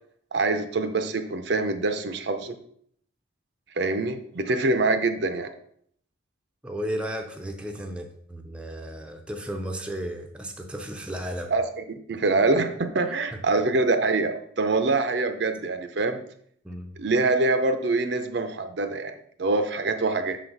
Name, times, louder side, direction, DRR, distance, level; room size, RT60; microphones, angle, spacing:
voice 1, 0.3-2.6 3.7-5.5 11.5-16.2 17.0-19.1 19.4-20.4, right 3 dB, 55° right, 8 dB, 0.5 m, -25 dB
voice 2, 6.6-11.5 13.0-13.1 16.6-16.9, equal, 5° right, 2 dB, 0.5 m, -34 dB
6.3 x 4.0 x 4.6 m, 0.65 s
head